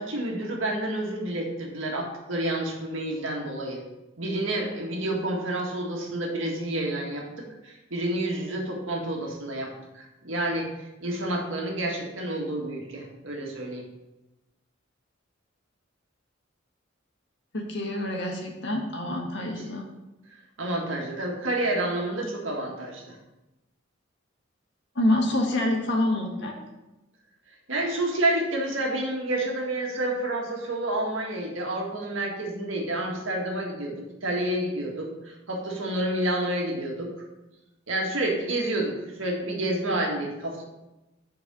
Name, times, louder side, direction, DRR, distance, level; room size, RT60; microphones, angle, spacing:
voice 1, 0.0-3.8 4.2-10.7 11.0-13.8 19.4-19.5 20.6-23.2 27.7-33.9 34.2-37.1 37.9-40.6, right 1 dB, 85° right, 0 dB, 1.8 m, -29 dB
voice 2, 17.5-19.8 25.0-26.5, left 1 dB, 65° left, 0 dB, 1.7 m, -26 dB
7.2 x 4.7 x 6.1 m, 0.98 s
head